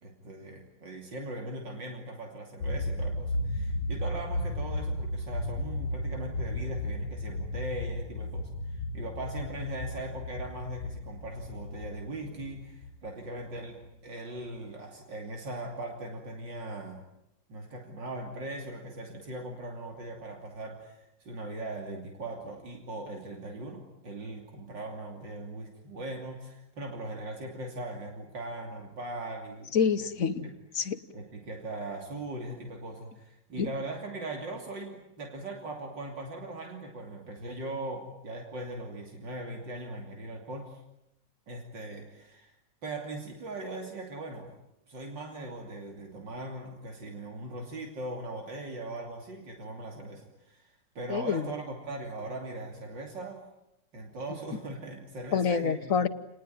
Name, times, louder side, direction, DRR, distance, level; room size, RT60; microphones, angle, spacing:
voice 1, 0.0-17.0 17.5-30.1 30.4-30.5 31.1-40.8 41.5-42.6 42.8-44.5 44.9-53.4 53.9-56.0, right 2 dB, 85° right, 3.6 m, -40 dB
sound 1, 2.6-13.9, left 1 dB, 90° left, 1.9 m, -34 dB
voice 2, 29.7-31.0 33.6-33.7 51.1-51.5 55.3-56.1, left 6 dB, 50° left, 1.5 m, -27 dB
28.5 x 20.0 x 9.3 m
omnidirectional pair, 1.9 m